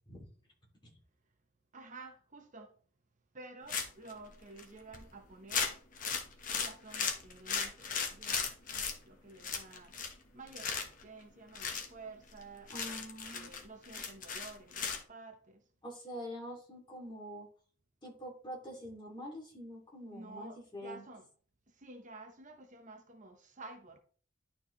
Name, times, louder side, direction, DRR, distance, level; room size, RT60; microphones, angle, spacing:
voice 1, 1.7-2.7 3.3-5.8 6.5-9.9 10.3-13.0 13.3-15.6 20.1-21.3 21.7-24.0, right 3 dB, 40° right, 0.9 m, -52 dB
sound 1, 3.7-4.1 4.6-4.7 4.9-5.1 5.5-8.9 9.4-10.2 10.5-11.0 11.5-11.9 12.3-12.4 12.7-15.0, left 6 dB, 45° left, 1.3 m, -36 dB
voice 2, 12.7-13.5 15.8-17.5 18.0-21.0, equal, 25° left, 2.7 m, -45 dB
11.0 x 4.5 x 3.2 m
head